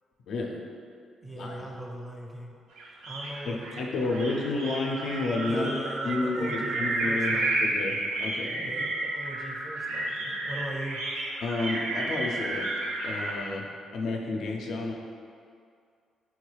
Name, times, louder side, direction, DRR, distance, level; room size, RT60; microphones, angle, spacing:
voice 1, 0.3-0.6 1.3-1.5 3.5-5.7 6.0-8.9 11.4-12.7 13.0-14.9, left 3 dB, 70° left, 1 dB, 0.4 m, -31 dB
voice 2, 1.2-2.6 3.0-4.6 5.4-7.8 8.6-11.0, right 1 dB, 10° right, -1 dB, 0.4 m, -39 dB
sound 1, 2.8-13.4, right 2 dB, 85° right, 0.4 m, -31 dB
3.5 x 2.3 x 3.1 m, 2.3 s
cardioid pair, 90°, 0 cm